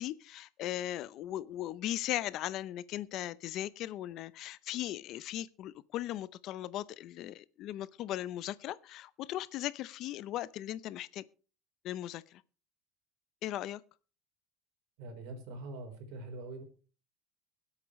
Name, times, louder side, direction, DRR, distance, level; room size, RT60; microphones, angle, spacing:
voice 1, 0.0-11.2 11.8-12.4 13.4-13.8, left 13 dB, 50° left, 0.7 m, -38 dB
voice 2, 15.0-16.6, right 2 dB, 70° right, 4.0 m, -43 dB
23.5 x 8.3 x 3.2 m
cardioid pair, 145°, 0 cm